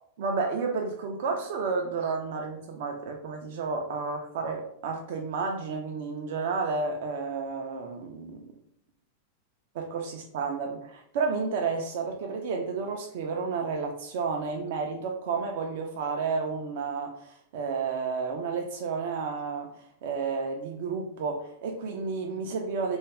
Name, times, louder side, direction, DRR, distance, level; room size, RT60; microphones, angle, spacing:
voice 1, 0.2-8.5 9.7-23.0, right 4 dB, 55° right, 2 dB, 0.3 m, -31 dB
2.3 x 2.2 x 3.2 m, 0.68 s
figure-of-eight pair, 90°, 0 cm